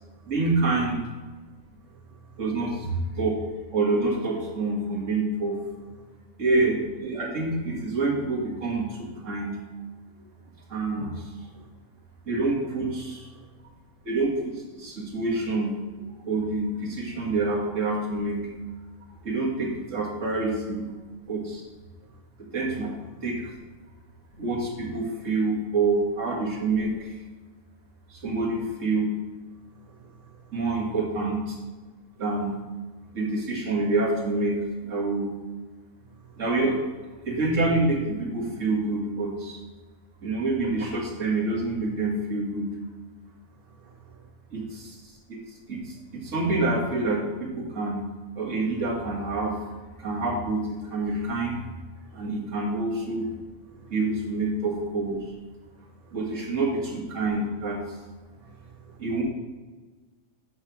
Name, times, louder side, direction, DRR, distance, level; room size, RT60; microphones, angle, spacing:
voice 1, 0.3-1.0 2.4-3.4 3.7-5.6 6.4-9.6 10.7-11.5 12.3-13.3 14.0-15.8 16.0-18.4 19.2-20.9 21.3-21.6 22.5-22.9 23.2-23.5 24.4-27.2 28.1-29.1 30.5-31.6 32.2-32.5 33.1-34.6 34.8-35.3 36.4-36.8 37.3-39.6 40.2-42.7 44.5-45.0 45.3-45.4 45.7-48.0 48.4-51.6 52.1-53.2 53.9-55.3 56.1-57.8 59.0-59.2, right 3 dB, 65° right, -2 dB, 1.9 m, -27 dB
voice 2, 2.1-2.4 11.5-11.6 13.3-13.5 22.1-22.2 29.9-30.5 36.2-36.4 43.8-44.3 52.1-52.2 53.7-53.9 56.0-56.1 58.4-59.0, right 9 dB, 80° right, 0 dB, 1.2 m, -54 dB
8.7 x 3.2 x 6.0 m, 1.3 s
omnidirectional pair, 1.4 m